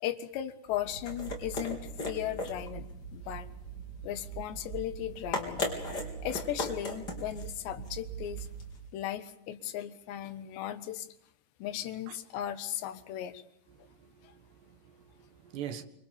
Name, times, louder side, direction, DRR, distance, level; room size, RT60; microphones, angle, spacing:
voice 1, 0.0-2.9 3.1-3.5 4.0-5.8 6.2-8.5 8.9-11.1 11.6-13.4 14.2-14.3, left 12 dB, 85° left, 3.6 m, -37 dB
sound 1, 0.7-8.9, equal, 25° left, 4.5 m, -38 dB
voice 2, 13.9-15.8, right 10 dB, 80° right, 3.8 m, -44 dB
25.5 x 25.0 x 7.2 m
omnidirectional pair, 4.9 m